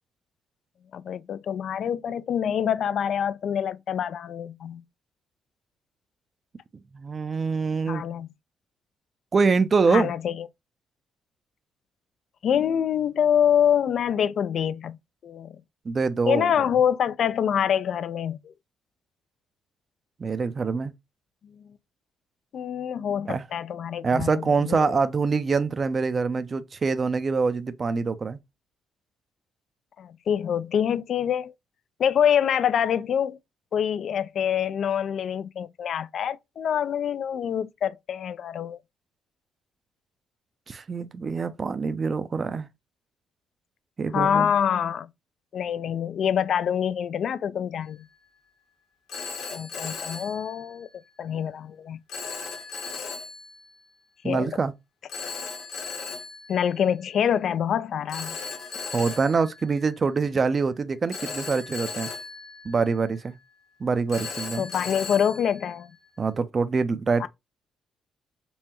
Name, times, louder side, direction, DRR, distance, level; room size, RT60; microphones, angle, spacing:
voice 1, 0.9-4.8 7.9-8.3 9.9-10.5 12.4-15.0 15.2-15.6 16.3-18.4 22.5-25.0 30.0-31.5 32.0-33.4 33.7-38.8 44.1-45.1 45.5-48.1 49.5-50.9 51.2-52.0 54.2-54.5 56.5-58.4 64.6-65.9 67.2-67.3, left 8 dB, 65° left, 0.4 m, -25 dB
voice 2, 6.9-8.0 9.3-10.1 15.9-16.5 20.2-20.9 23.3-23.4 24.0-28.4 40.7-42.7 44.0-44.5 54.2-54.7 58.9-62.1 62.6-63.3 63.8-64.7 66.2-67.3, right 4 dB, 40° right, 0.5 m, -25 dB
Telephone, 47.8-48.2 49.1-51.1 52.1-53.8 55.1-57.3 58.1-60.4 61.1-63.4 64.1-66.3, left 4 dB, 80° left, 1.6 m, -37 dB
5.4 x 2.1 x 2.9 m
cardioid pair, 90°, 0 cm